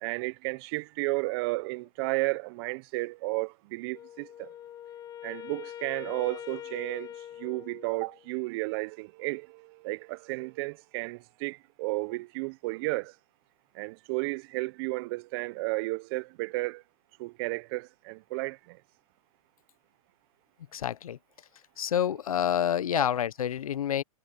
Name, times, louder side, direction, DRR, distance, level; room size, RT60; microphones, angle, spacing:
voice 1, 0.0-4.5 5.2-7.1 7.4-9.5 9.8-13.1 13.8-16.8 17.2-18.6 22.9-23.1, right 25 dB, 45° right, 0.8 m, -33 dB
Wind instrument woodwind instrument, 3.9-8.3, left 11 dB, 20° left, 0.7 m, -43 dB
voice 2, 20.7-21.2 21.8-24.0, left 9 dB, 75° left, 1.0 m, -28 dB
hypercardioid pair, 125°, 18 cm